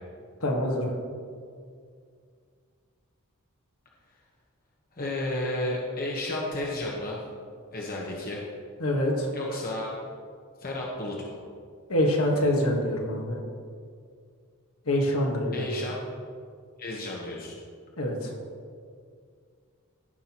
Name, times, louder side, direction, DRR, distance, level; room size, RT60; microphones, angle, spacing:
voice 1, 0.4-0.9 8.8-9.3 11.9-13.4 14.9-15.7 18.0-18.3, left 1 dB, 75° left, 0 dB, 1.5 m, -25 dB
voice 2, 5.0-7.2 7.7-8.4 9.3-9.9 10.6-11.4 15.5-16.0 16.8-17.6, left 1 dB, 40° left, -3 dB, 1.1 m, -32 dB
15.5 x 5.8 x 3.0 m, 2.2 s
head